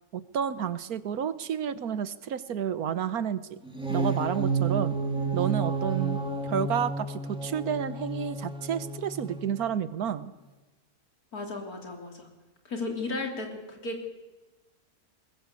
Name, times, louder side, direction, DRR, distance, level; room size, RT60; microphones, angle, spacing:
voice 1, 0.1-3.6 3.9-5.0 5.3-6.2 6.4-10.3, right 8 dB, 80° right, 14 dB, 1.5 m, -30 dB
sound 1, 3.6-9.6, right 4 dB, 5° right, 2.7 m, -31 dB
voice 2, 11.3-12.3 12.7-14.1, left 3 dB, 85° left, 3 dB, 3.9 m, -34 dB
20.5 x 20.0 x 8.3 m, 1.1 s
omnidirectional pair, 1.5 m